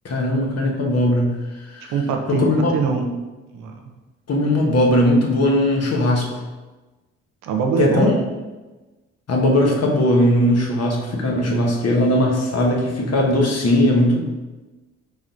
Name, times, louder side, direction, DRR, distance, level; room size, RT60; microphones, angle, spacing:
voice 1, 0.0-1.4 1.7-1.9 2.3-2.7 4.3-6.4 7.8-8.1 9.3-14.2, left 1 dB, 50° left, 0 dB, 1.0 m, -18 dB
voice 2, 1.9-3.1 3.5-3.7 7.4-8.1, right 5 dB, 75° right, 3 dB, 0.6 m, -22 dB
4.1 x 3.3 x 2.5 m, 1.2 s
hypercardioid pair, 50°, 33 cm